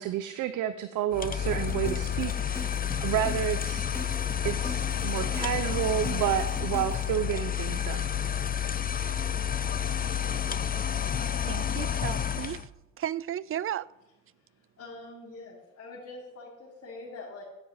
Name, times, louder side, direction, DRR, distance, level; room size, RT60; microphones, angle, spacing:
voice 1, 0.0-2.7 3.0-3.9 4.4-8.0, right 11 dB, 90° right, 0.8 m, -30 dB
sound 1, 1.1-12.7, left 9 dB, 30° left, 0.7 m, -30 dB
sound 2, 1.5-7.1, left 2 dB, 10° left, 2.5 m, -41 dB
voice 2, 11.1-12.7 13.0-13.9, right 11 dB, 45° right, 0.4 m, -35 dB
voice 3, 14.3-17.4, left 2 dB, 60° left, 3.2 m, -45 dB
9.0 x 8.6 x 9.5 m
cardioid pair, 90°, 30 cm